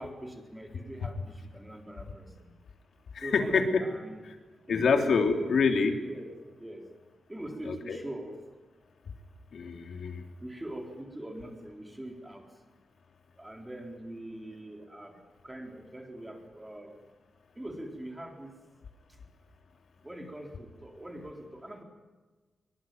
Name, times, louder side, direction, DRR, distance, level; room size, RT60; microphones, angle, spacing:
voice 1, 0.0-2.5 3.2-4.2 4.7-5.5 6.1-6.3 6.6-6.8 7.3-8.4 10.4-12.4 13.4-15.2 15.4-16.9 17.6-18.6 20.0-21.8, right 1 dB, 10° right, 3 dB, 4.0 m, -42 dB
voice 2, 3.1-3.7 4.7-5.9 7.6-8.0 9.5-10.2, left 5 dB, 60° left, 5 dB, 3.1 m, -26 dB
25.0 x 23.5 x 9.4 m, 1.3 s
wide cardioid pair, 175°, 0 cm